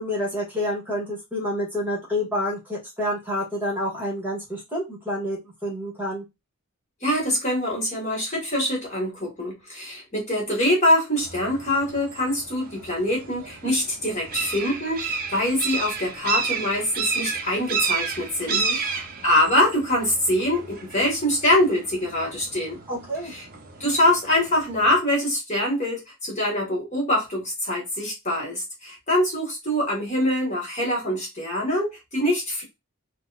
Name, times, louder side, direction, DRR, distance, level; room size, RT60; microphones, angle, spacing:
voice 1, 0.0-6.2 18.5-18.8 22.9-23.3, equal, 10° right, 1.5 m, -28 dB
voice 2, 7.0-22.8 23.2-23.4 23.8-32.6, left 1 dB, 30° left, 1.6 m, -24 dB
sound 1, 11.2-25.0, right 5 dB, 40° right, 0.7 m, -32 dB
3.9 x 2.2 x 2.4 m
head